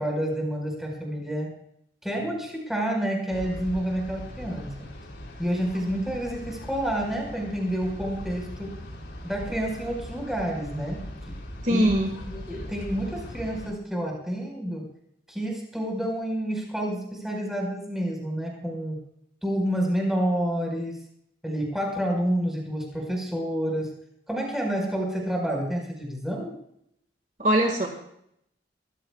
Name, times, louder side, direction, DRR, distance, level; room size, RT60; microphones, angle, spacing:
voice 1, 0.0-1.5 2.0-4.9 5.4-8.7 9.2-11.0 11.7-11.9 12.3-14.8 15.3-19.0 19.4-21.0 21.4-23.9 24.3-26.6, equal, ahead, 0 dB, 4.9 m, -29 dB
sound 1, 3.3-13.7, left 1 dB, 75° left, 3.4 m, -40 dB
voice 2, 11.6-12.1 27.4-27.9, equal, 45° right, 2 dB, 1.9 m, -21 dB
23.5 x 15.0 x 2.4 m, 0.74 s
head